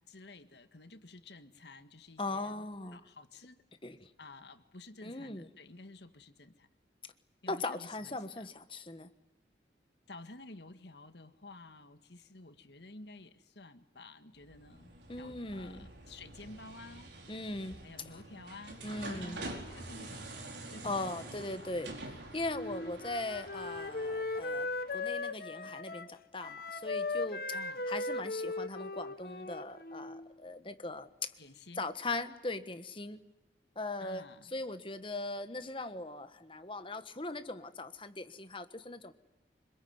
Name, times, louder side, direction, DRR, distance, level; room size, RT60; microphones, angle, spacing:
voice 1, 0.0-3.6 4.2-6.7 7.4-8.5 10.1-14.9 15.2-17.1 17.8-21.3 21.6-21.8 27.5-27.9 31.4-31.9 34.0-34.5, left 2 dB, 70° left, 9 dB, 1.8 m, -52 dB
voice 2, 2.2-3.0 3.8-4.1 5.0-5.5 7.5-9.1 15.1-15.8 17.3-17.8 18.8-19.4 20.8-21.9 22.3-27.4 27.9-31.1 31.8-33.2 33.7-34.2 34.5-39.1, left 2 dB, 30° left, 10 dB, 1.4 m, -39 dB
sound 1, 14.4-25.1, right 2 dB, 75° right, 4.7 m, -47 dB
Wind instrument woodwind instrument, 22.5-30.3, left 3 dB, 55° left, 1.3 m, -38 dB
26.0 x 22.5 x 9.5 m, 1.0 s
head